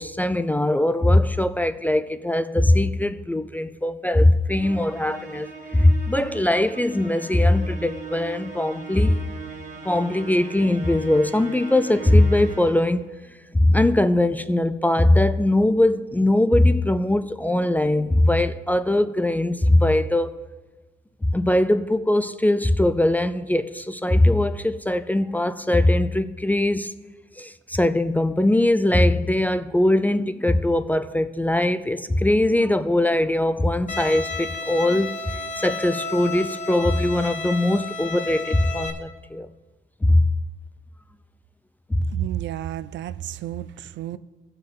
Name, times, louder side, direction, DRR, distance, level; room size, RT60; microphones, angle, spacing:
voice 1, 0.0-9.2 9.8-13.1 13.5-20.3 21.3-26.9 27.4-35.1 35.6-39.5 40.1-40.3, left 1 dB, 10° left, 0.3 m, -21 dB
Musical instrument, 4.6-13.0, right 5 dB, 35° right, 1.7 m, -39 dB
Bowed string instrument, 33.9-38.9, left 3 dB, 35° left, 1.1 m, -32 dB
voice 2, 42.1-44.2, right 12 dB, 65° right, 0.4 m, -31 dB
16.0 x 5.6 x 3.8 m
cardioid pair, 90°, 20 cm